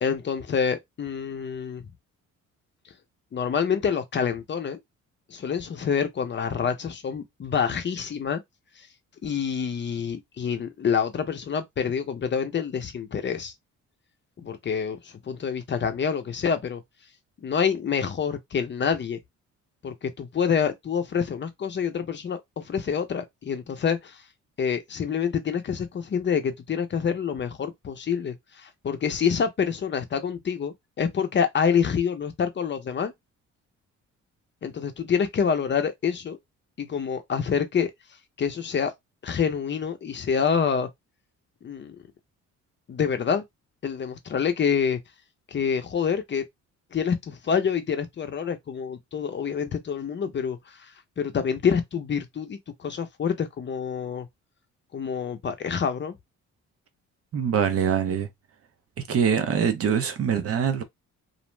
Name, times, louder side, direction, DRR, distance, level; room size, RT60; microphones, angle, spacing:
voice 1, 0.0-1.9 3.3-4.8 5.3-8.4 9.2-13.5 14.4-16.8 17.4-19.2 19.8-24.2 24.6-33.1 34.6-36.4 36.8-37.9 38.4-38.9 39.2-40.9 41.6-42.0 42.9-43.4 43.8-45.0 45.5-46.4 46.9-50.9 51.2-54.3 54.9-56.1, left 7 dB, 40° left, 0.6 m, -27 dB
voice 2, 57.3-58.3 59.1-60.8, right 7 dB, 50° right, 0.6 m, -23 dB
2.5 x 2.0 x 3.1 m
cardioid pair, 90°, 30 cm